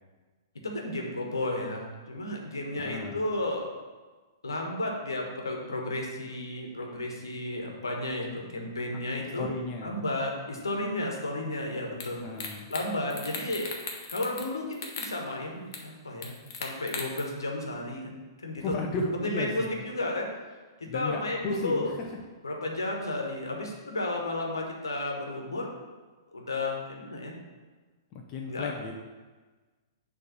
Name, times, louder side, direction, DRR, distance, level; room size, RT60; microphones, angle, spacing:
voice 1, 0.6-3.7 4.4-9.5 9.8-12.2 12.7-13.7 14.1-18.1 18.4-18.8 19.1-20.3 20.8-22.0 22.4-25.8 26.3-27.3 28.5-28.7, left 1 dB, 75° left, 0 dB, 1.3 m, -33 dB
voice 2, 2.6-3.2 9.4-10.0 12.2-12.7 18.6-19.8 20.9-21.8 28.3-28.9, left 3 dB, 30° left, 0 dB, 0.7 m, -34 dB
sound 1, 12.0-12.1 12.4-12.8 13.1-14.5 14.7-15.1 15.7-15.8 16.2-17.2, left 5 dB, 50° left, 1.1 m, -37 dB
6.8 x 3.4 x 6.1 m, 1.3 s
figure-of-eight pair, 110°, 2 cm